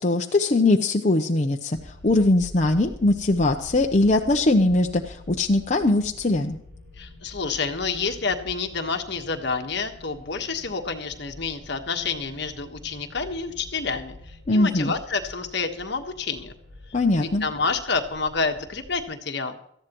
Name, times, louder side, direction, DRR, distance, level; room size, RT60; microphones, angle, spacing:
voice 1, 0.0-1.8 2.0-6.6 14.5-14.9 16.9-17.4, left 2 dB, 35° left, 2 dB, 0.7 m, -21 dB
sound 1, 1.7-19.0, left 2 dB, 80° right, 7.3 m, -46 dB
voice 2, 7.0-16.5 17.2-19.6, left 4 dB, 60° left, 5 dB, 1.4 m, -29 dB
18.5 x 14.0 x 3.1 m, 0.70 s
head